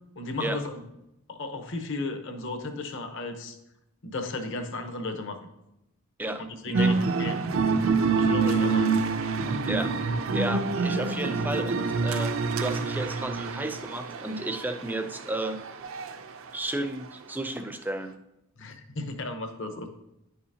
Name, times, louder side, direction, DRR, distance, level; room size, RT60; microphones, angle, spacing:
voice 1, 0.2-0.8 1.3-3.6 4.0-5.4 6.4-7.4 8.2-9.0 18.6-19.9, left 2 dB, 60° left, 6 dB, 0.9 m, -34 dB
voice 2, 6.2-6.9 9.7-9.9 10.3-12.3 12.6-15.6 16.5-18.1, right 1 dB, 10° right, 7 dB, 0.4 m, -33 dB
sound 1, 6.7-16.2, right 4 dB, 70° right, 0.5 m, -27 dB
10.0 x 5.6 x 2.8 m, 0.88 s
head